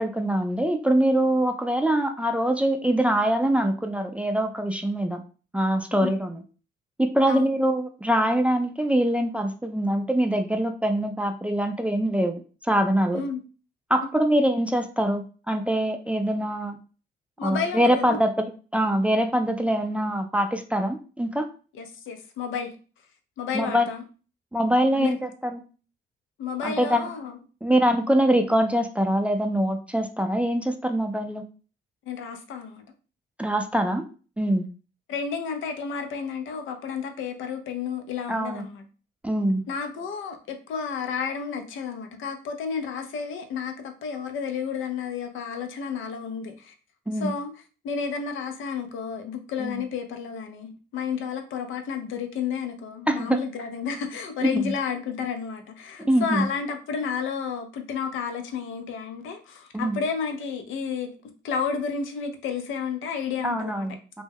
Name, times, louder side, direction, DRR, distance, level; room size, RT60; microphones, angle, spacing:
voice 1, 0.0-5.2 5.5-6.4 7.0-13.2 13.9-16.8 17.4-21.5 23.5-23.9 24.5-25.6 26.6-27.1 27.6-31.4 33.4-34.0 34.4-34.6 38.3-38.6 39.2-39.7 47.1-47.3 49.6-49.8 53.1-53.4 54.4-54.7 56.1-56.4 59.7-60.0 63.4-64.2, right 1 dB, 5° right, 0.3 m, -24 dB
voice 2, 17.4-18.2 21.8-22.7 23.4-24.0 24.8-25.1 26.4-27.4 32.1-32.8 35.1-38.8 39.7-46.7 47.2-47.5 47.8-61.1 61.4-63.9, left 6 dB, 75° left, 0.5 m, -31 dB
2.2 x 2.1 x 3.3 m
cardioid pair, 75°, 20 cm